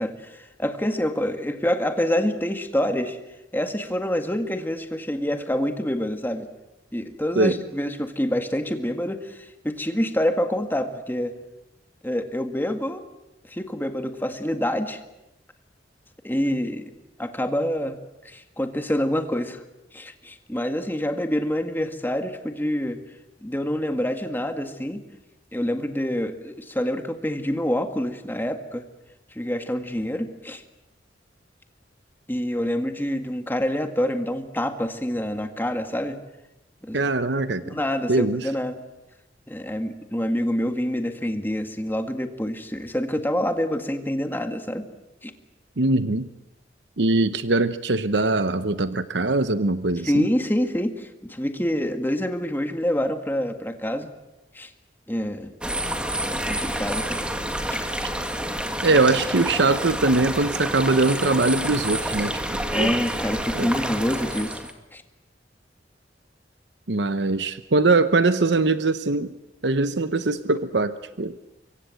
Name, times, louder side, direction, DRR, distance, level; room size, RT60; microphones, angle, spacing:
voice 1, 0.0-3.2 3.5-6.5 6.9-11.4 12.0-13.0 13.5-15.0 16.2-16.9 17.2-18.0 18.2-19.6 19.9-23.0 23.4-25.0 25.5-28.8 29.4-30.6 32.3-36.2 36.8-37.0 37.6-38.8 39.5-44.8 45.2-45.3 50.0-54.1 54.5-54.7 55.1-55.5 56.3-57.2 62.7-64.6 64.9-65.0, equal, 10° left, 7 dB, 1.9 m, -26 dB
voice 2, 36.9-37.8 38.1-38.5 45.8-46.3 47.0-50.3 58.8-62.9 63.5-63.7 66.9-69.3 69.6-71.4, right 3 dB, 65° right, 12 dB, 0.9 m, -22 dB
sound 1, 55.6-64.7, right 1 dB, 5° right, 2.0 m, -28 dB
25.0 x 23.5 x 7.8 m, 0.95 s
head